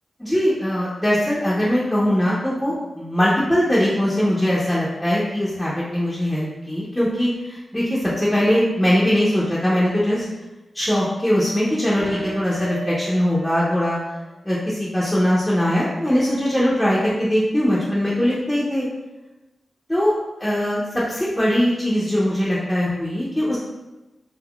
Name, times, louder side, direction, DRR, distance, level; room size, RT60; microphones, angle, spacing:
voice 1, 0.2-10.2 10.7-14.0 14.4-18.9 19.9-20.1 20.4-23.6, equal, 10° left, -8 dB, 0.5 m, -21 dB
sound 1, 12.0-13.8 14.1-14.2, right 2 dB, 45° right, 0.8 m, -35 dB
3.5 x 2.6 x 2.3 m, 1.1 s
wide cardioid pair, 95°, 0 cm